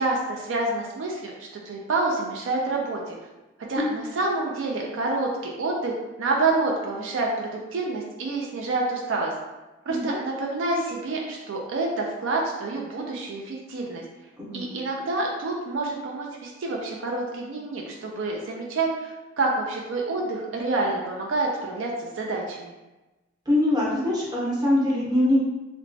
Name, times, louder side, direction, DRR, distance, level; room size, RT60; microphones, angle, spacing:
voice 1, 0.0-3.2 3.7-9.3 9.9-14.0 14.5-22.7, right 3 dB, 70° right, -1 dB, 0.4 m, -28 dB
voice 2, 9.9-10.2 14.4-14.7 23.5-25.5, left 1 dB, 20° right, -6 dB, 0.7 m, -23 dB
2.9 x 2.1 x 2.6 m, 1.1 s
head